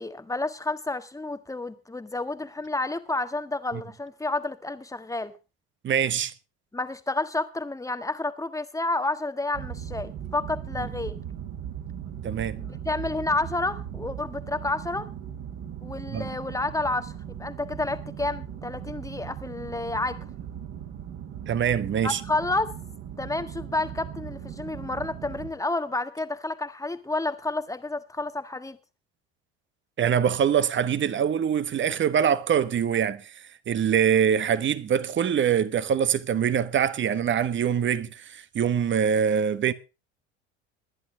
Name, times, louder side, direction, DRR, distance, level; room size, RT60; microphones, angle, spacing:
voice 1, 0.0-5.3 6.7-11.2 12.6-15.1 15.8-20.2 22.0-22.7 23.2-28.8, left 2 dB, 10° left, 1.5 m, -30 dB
voice 2, 5.8-6.3 12.2-12.6 16.1-16.3 21.5-22.2 30.0-33.3 33.7-39.7, right 8 dB, 35° right, 1.3 m, -24 dB
sound 1, 9.5-25.5, right 9 dB, 55° right, 3.8 m, -38 dB
20.5 x 10.5 x 3.3 m
hypercardioid pair, 75°, 32 cm